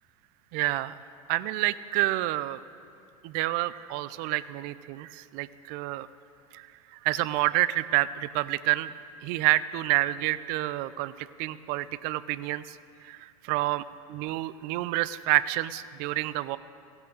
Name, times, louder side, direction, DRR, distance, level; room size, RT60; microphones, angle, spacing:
voice 1, 0.5-1.0 1.3-2.6 3.2-6.1 6.5-8.9 9.2-16.6, right 17 dB, 50° right, 17 dB, 0.5 m, -29 dB
15.5 x 10.5 x 6.6 m, 2.5 s
hypercardioid pair, 90°, 19 cm